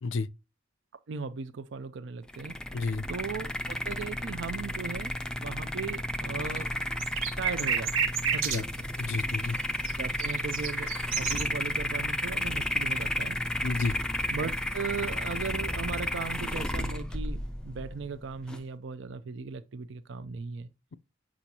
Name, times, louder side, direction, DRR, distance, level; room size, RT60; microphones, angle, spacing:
voice 1, 1.1-2.5 3.1-6.7 7.4-8.9 10.0-13.4 14.3-20.7, right 5 dB, 65° right, 0.4 m, -37 dB
sound 1, 2.3-18.6, left 1 dB, 5° left, 0.4 m, -33 dB
voice 2, 2.7-3.1 8.5-8.6 9.0-9.6 13.6-14.0, left 4 dB, 70° left, 0.4 m, -30 dB
sound 2, 6.6-8.6 9.8-9.9 10.2-11.4, right 7 dB, 85° right, 1.0 m, -30 dB
6.2 x 6.0 x 2.8 m
head